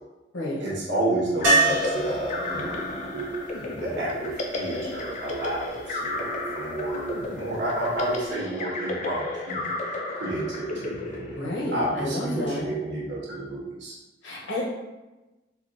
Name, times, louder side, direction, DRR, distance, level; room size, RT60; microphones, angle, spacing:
voice 1, 0.6-11.5 11.7-13.9, right 1 dB, 70° right, -6 dB, 1.2 m, -31 dB
sound 1, 1.4-12.0, left 2 dB, 40° left, 0.4 m, -33 dB
sound 2, 1.4-5.3 8.0-8.1 8.3-8.4, right 3 dB, 85° right, 0.9 m, -27 dB
voice 2, 11.3-12.7 14.2-14.6, left 1 dB, 85° left, -4 dB, 0.9 m, -30 dB
3.6 x 2.8 x 2.6 m, 1.1 s
head